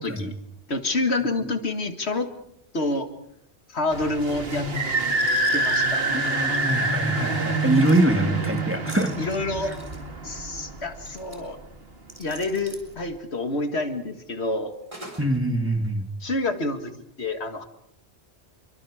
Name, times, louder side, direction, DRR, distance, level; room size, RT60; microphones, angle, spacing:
voice 1, 0.0-0.4 0.7-2.3 2.7-3.1 3.7-4.7 5.5-6.0 9.2-9.7 10.2-11.6 12.2-14.7 16.2-16.9 17.2-17.6, left 2 dB, 75° left, 7 dB, 2.2 m, -27 dB
sound 1, 3.9-11.2, right 2 dB, 60° right, 2.2 m, -26 dB
voice 2, 6.1-9.1 9.6-9.7 15.2-16.1, right 1 dB, 10° right, 4 dB, 2.5 m, -24 dB
sound 2, 7.6-8.1 8.9-10.0 11.1-11.4 12.1-12.9 14.9-15.4 15.8-15.9, right 1 dB, 30° right, 4.4 m, -44 dB
28.0 x 23.5 x 5.0 m, 0.72 s
omnidirectional pair, 1.1 m